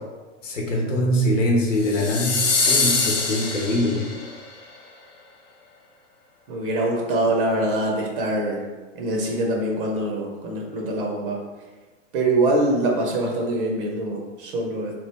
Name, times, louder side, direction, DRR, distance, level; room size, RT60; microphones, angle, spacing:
voice 1, 0.4-4.1, equal, 80° left, -1 dB, 0.9 m, -23 dB
sound 1, 1.8-4.3, left 3 dB, 25° left, 0.5 m, -23 dB
voice 2, 6.5-8.6 8.9-11.4 12.1-15.0, right 1 dB, 45° right, 0 dB, 0.6 m, -24 dB
3.1 x 2.4 x 3.2 m, 1.3 s
hypercardioid pair, 105°, 38 cm